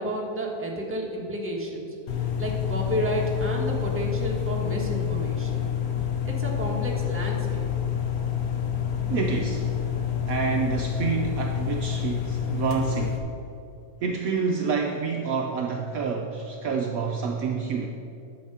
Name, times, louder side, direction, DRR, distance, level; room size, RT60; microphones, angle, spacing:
voice 1, 0.0-5.7 6.2-7.7, right 1 dB, 10° right, -2 dB, 1.4 m, -31 dB
sound 1, 2.1-13.2, left 9 dB, 60° left, 1.3 m, -28 dB
voice 2, 9.1-9.7 10.3-13.3 14.0-17.9, right 5 dB, 65° right, 1 dB, 1.0 m, -28 dB
10.5 x 7.1 x 5.7 m, 2.8 s
omnidirectional pair, 1.8 m